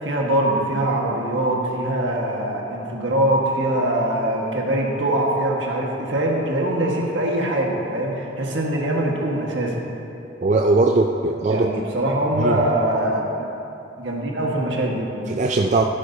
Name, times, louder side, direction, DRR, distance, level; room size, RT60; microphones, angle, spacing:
voice 1, 0.0-9.7 11.5-13.2 14.0-15.1, right 1 dB, 70° right, -1 dB, 1.5 m, -23 dB
voice 2, 10.4-11.7 12.3-12.6 15.3-15.8, right 3 dB, 40° right, 2 dB, 0.4 m, -19 dB
16.0 x 9.5 x 2.8 m, 2.9 s
head